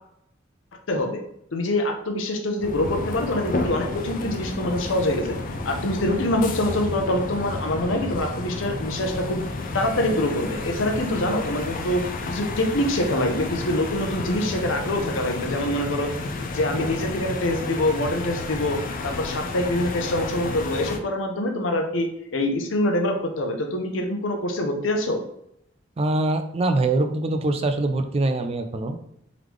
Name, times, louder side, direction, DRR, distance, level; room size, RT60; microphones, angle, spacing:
voice 1, 0.9-1.2 1.5-5.4 5.7-9.4 9.7-16.1 16.5-18.8 19.0-22.1 22.3-25.2, left 1 dB, 75° left, 3 dB, 0.7 m, -25 dB
sound 1, 2.6-21.0, left 3 dB, 45° left, 0.4 m, -31 dB
voice 2, 26.0-29.0, right 2 dB, 30° right, 7 dB, 0.4 m, -23 dB
3.8 x 3.1 x 3.3 m, 0.74 s
head